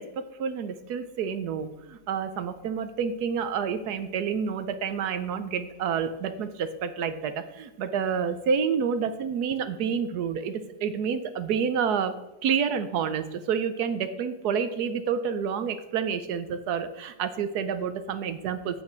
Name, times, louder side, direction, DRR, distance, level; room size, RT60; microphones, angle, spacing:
voice 1, 0.0-12.1 12.4-18.8, right 7 dB, 75° right, 11 dB, 1.3 m, -29 dB
8.5 x 8.2 x 4.4 m, 0.99 s
omnidirectional pair, 1.7 m